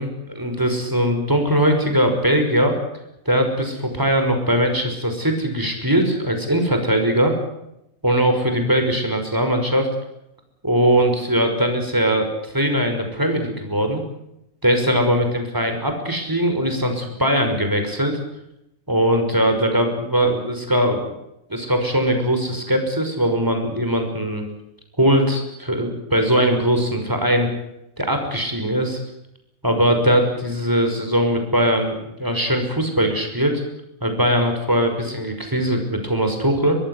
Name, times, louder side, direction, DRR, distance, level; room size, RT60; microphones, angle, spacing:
voice 1, 0.4-2.7 3.3-7.3 8.0-9.9 10.6-14.0 14.6-18.2 18.9-21.1 21.5-24.5 25.0-27.5 28.0-29.0 29.6-33.6 34.0-36.8, equal, 15° right, 5 dB, 5.9 m, -20 dB
24.0 x 20.5 x 8.1 m, 0.83 s
omnidirectional pair, 1.4 m